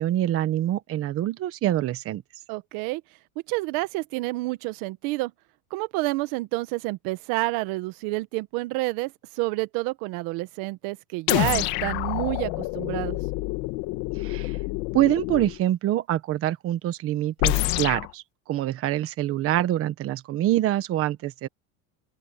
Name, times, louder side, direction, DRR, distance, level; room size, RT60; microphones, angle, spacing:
voice 1, 0.0-2.2 14.1-14.6 14.9-18.2 18.5-21.5, right 13 dB, 35° right, 1.3 m, -25 dB
voice 2, 2.5-3.0 3.5-5.3 5.7-13.2, right 21 dB, 55° right, 1.4 m, -29 dB
sound 1, 11.3-15.6 17.4-18.1, left 20 dB, 55° left, 2.1 m, -27 dB
open air
supercardioid pair, 155°, 41 cm